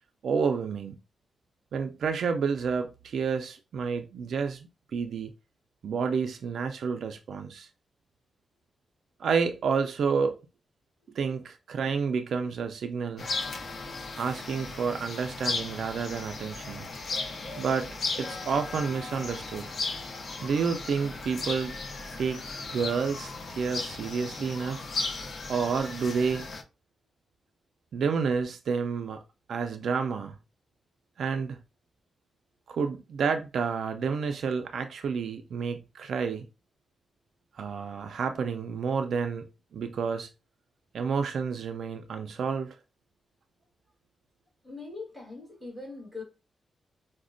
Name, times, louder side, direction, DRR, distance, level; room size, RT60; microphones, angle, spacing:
voice 1, 0.2-1.0 1.7-5.3 5.8-7.7 9.2-10.4 11.2-13.3 14.2-16.9 17.6-17.9 18.2-19.7 20.4-21.8 22.2-22.4 22.7-24.8 25.5-26.5 27.9-29.2 29.5-30.4 31.2-31.6 32.7-36.4 37.6-39.5 39.7-40.3 40.9-42.8, right 5 dB, 70° right, 0.3 m, -30 dB
sound 1, 13.2-26.6, left 3 dB, 45° left, 0.5 m, -36 dB
voice 2, 44.6-46.2, left 3 dB, ahead, 1.4 m, -41 dB
4.9 x 2.1 x 2.5 m
wide cardioid pair, 175°, 0 cm